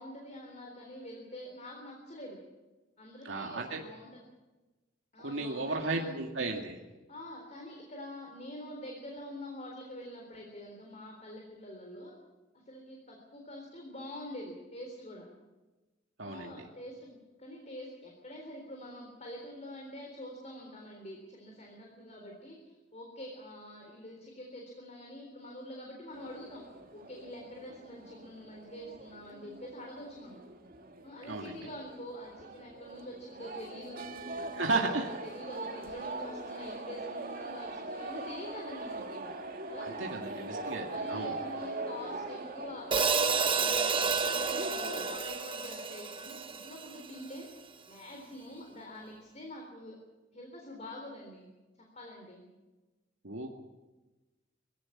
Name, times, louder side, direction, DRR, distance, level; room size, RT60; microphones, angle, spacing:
voice 1, 0.0-2.4 3.0-4.3 5.1-6.2 7.1-12.1 12.5-15.3 16.2-26.6 26.9-30.4 31.0-34.0 34.4-39.3 39.7-40.5 40.9-47.5 47.9-50.0 50.3-51.5 52.0-52.4, left 1 dB, 40° left, 0 dB, 3.8 m, -46 dB
voice 2, 3.3-3.8 5.2-6.8 16.2-16.7 31.3-31.5 34.6-35.1 39.8-41.3 53.2-53.6, right 3 dB, 80° right, 1 dB, 2.1 m, -34 dB
sound 1, 26.1-45.2, right 2 dB, 50° right, 2.2 m, -42 dB
Hi-hat, 42.9-47.2, right 5 dB, 25° right, 1.1 m, -30 dB
22.0 x 16.5 x 8.7 m, 1.2 s
head